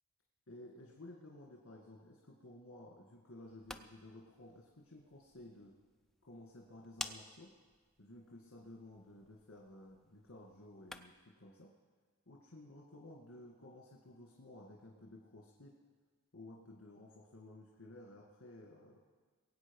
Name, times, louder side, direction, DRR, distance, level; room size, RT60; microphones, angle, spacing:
voice 1, 0.5-5.7 6.2-7.5 8.0-11.7 12.3-15.7 16.3-19.0, left 1 dB, 60° left, -2 dB, 1.8 m, -55 dB
sound 1, 3.4-11.3, left 1 dB, ahead, 0.4 m, -53 dB
22.0 x 8.6 x 5.4 m, 1.5 s
head